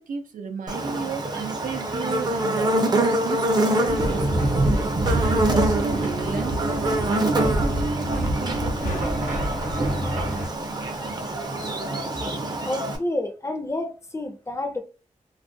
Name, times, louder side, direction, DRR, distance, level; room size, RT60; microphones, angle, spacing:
voice 1, 0.0-4.3 4.7-9.0, right 5 dB, 90° right, 0.4 m, -33 dB
Buzz, 0.7-13.0, right 1 dB, 30° right, 0.5 m, -26 dB
sound 1, 3.9-10.5, right 1 dB, 60° right, 0.8 m, -26 dB
sound 2, 8.8-11.2, equal, 75° left, 0.6 m, -36 dB
voice 2, 12.6-14.8, left 1 dB, 20° left, 0.4 m, -29 dB
2.3 x 2.1 x 2.6 m
wide cardioid pair, 100°, 14 cm